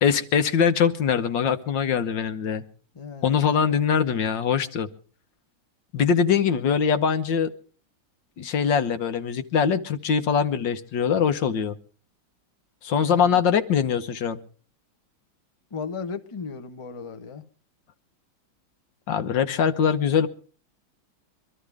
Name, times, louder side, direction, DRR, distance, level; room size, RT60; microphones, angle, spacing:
voice 1, 0.0-2.6 3.2-4.9 5.9-7.5 8.4-11.8 12.8-14.4 19.1-20.3, left 7 dB, 65° left, 1.6 m, -22 dB
voice 2, 2.9-3.4 13.0-13.4 15.7-17.4, left 5 dB, 20° left, 0.9 m, -36 dB
24.5 x 13.5 x 3.5 m
omnidirectional pair, 2.2 m